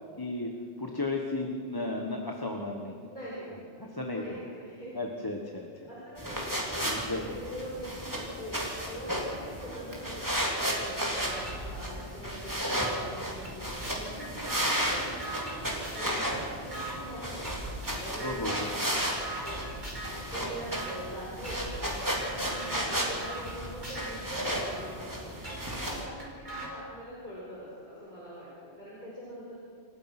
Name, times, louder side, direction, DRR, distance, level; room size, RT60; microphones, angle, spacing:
voice 1, 0.2-0.5 0.8-3.0 3.8-4.2 4.9-5.9 6.8-7.2 18.2-18.9, left 2 dB, 20° left, 1 dB, 1.5 m, -34 dB
voice 2, 3.1-3.5 4.0-5.0 5.9-8.6 8.9-17.6 18.0-19.1 19.4-19.9 20.3-25.3 25.7-29.5, equal, 45° left, -7 dB, 5.5 m, -43 dB
sound 1, 6.2-26.0, equal, 15° right, 3.5 m, -34 dB
sound 2, 10.7-10.8 11.2-12.9 13.4-16.3 16.7-16.9 17.4-17.9 18.2-18.8 19.2-20.2 20.7-20.9 21.4-24.9 25.4-26.7, right 2 dB, 40° right, 4.7 m, -41 dB
28.5 x 15.0 x 6.1 m, 2.4 s
omnidirectional pair, 1.2 m